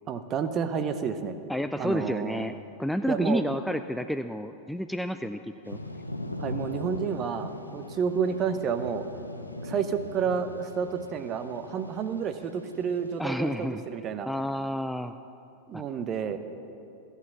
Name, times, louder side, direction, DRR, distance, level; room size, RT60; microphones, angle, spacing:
voice 1, 0.1-1.3 1.8-2.4 3.1-3.4 6.4-9.0 9.6-14.3 15.7-16.4, right 6 dB, 30° right, 10 dB, 0.8 m, -30 dB
voice 2, 1.5-2.5 2.8-5.8 13.2-13.8 14.3-15.1 15.7-15.8, equal, ahead, 8 dB, 0.3 m, -30 dB
Thunder / Rain, 5.6-13.2, left 1 dB, 85° left, 0.8 m, -40 dB
14.0 x 8.2 x 7.3 m, 2.8 s
figure-of-eight pair, 90°, 0 cm